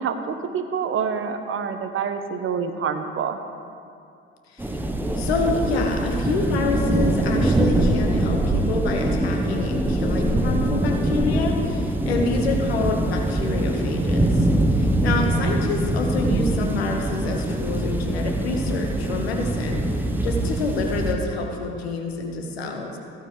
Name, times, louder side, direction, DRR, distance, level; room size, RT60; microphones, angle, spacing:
voice 1, 0.0-3.4 15.4-15.8, right 6 dB, 40° right, 8 dB, 1.1 m, -27 dB
sound 1, 4.6-21.1, right 1 dB, 5° right, 1.2 m, -23 dB
voice 2, 5.2-14.5 14.7-19.8 20.2-23.0, left 3 dB, 80° left, 3 dB, 1.4 m, -27 dB
15.0 x 14.0 x 3.4 m, 2.4 s
figure-of-eight pair, 55°, 31 cm